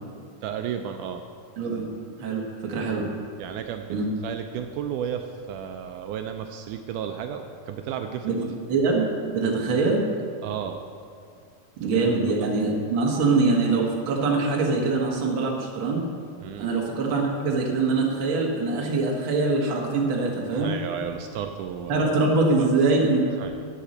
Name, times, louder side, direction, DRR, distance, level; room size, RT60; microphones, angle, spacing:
voice 1, 0.4-1.2 3.4-4.0 4.2-8.5 10.4-10.8 11.9-12.5 16.4-16.7 20.5-22.0 22.6-22.7 23.3-23.6, right 8 dB, 80° right, 6 dB, 1.9 m, -33 dB
voice 2, 1.6-1.9 2.2-3.1 3.9-4.0 8.2-8.4 8.7-10.1 11.8-16.0 16.6-20.7 21.9-23.2, right 3 dB, 50° right, -1 dB, 1.7 m, -23 dB
13.5 x 9.0 x 4.3 m, 2.2 s
omnidirectional pair, 4.0 m